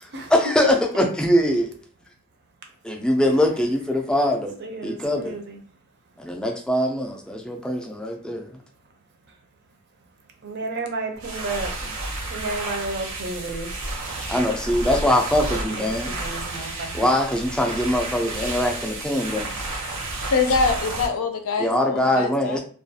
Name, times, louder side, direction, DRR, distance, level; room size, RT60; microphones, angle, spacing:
voice 1, 0.3-1.7 2.8-4.5 4.8-5.4 6.2-8.5 14.3-16.1 16.9-19.5 21.6-22.6, left 1 dB, 5° left, 0.3 m, -22 dB
voice 2, 4.3-5.6 10.4-12.0 12.3-13.9 15.5-15.9 16.2-16.9, right 3 dB, 50° right, 0.5 m, -32 dB
sound 1, 11.1-21.1, right 2 dB, 85° right, 0.8 m, -31 dB
voice 3, 20.3-22.6, left 4 dB, 85° left, 0.5 m, -24 dB
2.3 x 2.3 x 2.7 m
head